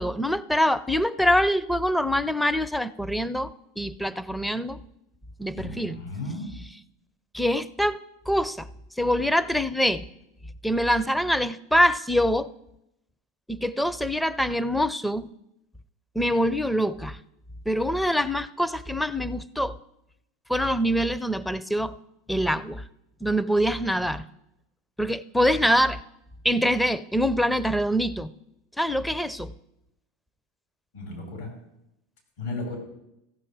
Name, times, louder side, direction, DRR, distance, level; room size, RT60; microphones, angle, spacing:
voice 1, 0.0-4.8 5.4-6.0 7.3-8.0 8.3-8.7 9.0-10.1 10.6-12.5 13.5-15.3 16.1-17.2 17.7-19.8 20.5-22.0 22.3-22.8 23.2-24.2 25.0-26.0 26.4-28.3 28.8-29.5, equal, 5° left, 0.5 m, -24 dB
voice 2, 5.5-6.4 30.9-31.5 32.4-32.8, left 2 dB, 75° left, 4.8 m, -34 dB
15.0 x 7.4 x 4.8 m
hypercardioid pair, 85°, 0 cm